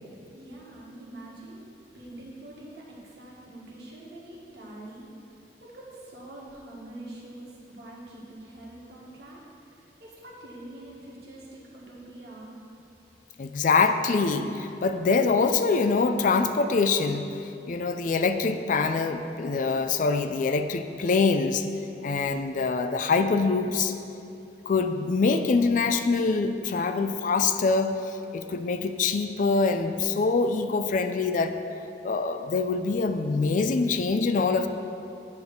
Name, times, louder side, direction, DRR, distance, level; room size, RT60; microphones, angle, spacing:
voice 1, 0.0-5.1 5.6-9.4 9.7-12.6, right 1 dB, 65° right, -5 dB, 1.6 m, -45 dB
voice 2, 13.4-17.3 17.7-21.7 22.0-23.9 24.7-31.5 32.0-34.7, left 4 dB, 45° left, 8 dB, 0.4 m, -24 dB
9.4 x 3.4 x 6.3 m, 2.7 s
head